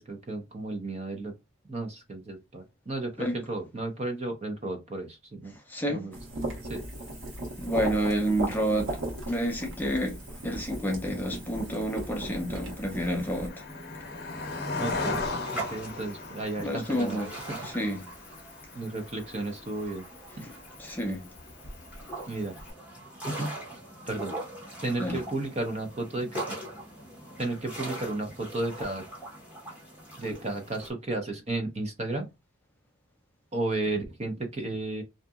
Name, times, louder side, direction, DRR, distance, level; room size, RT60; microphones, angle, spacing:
voice 1, 0.0-1.3 1.7-5.5 5.9-6.2 6.7-6.8 14.8-15.2 15.5-17.2 17.5-17.6 18.7-20.0 22.3-22.5 23.2-23.5 24.1-24.3 24.8-26.6 27.4-29.0 30.2-32.3 33.5-35.0, right 2 dB, 30° right, 0.6 m, -33 dB
voice 2, 5.7-6.0 7.6-8.9 9.3-10.2 10.4-13.6 15.4-15.6 16.6-17.3 17.6-18.1 20.4-20.5 20.8-21.2 25.0-25.2, equal, 10° left, 0.4 m, -29 dB
sound 1, 6.1-13.5, right 1 dB, 75° right, 1.0 m, -37 dB
Cricket, 6.7-22.7, left 3 dB, 50° left, 0.6 m, -40 dB
sound 2, 14.4-30.9, right 1 dB, 5° right, 0.9 m, -42 dB
2.7 x 2.5 x 2.3 m
head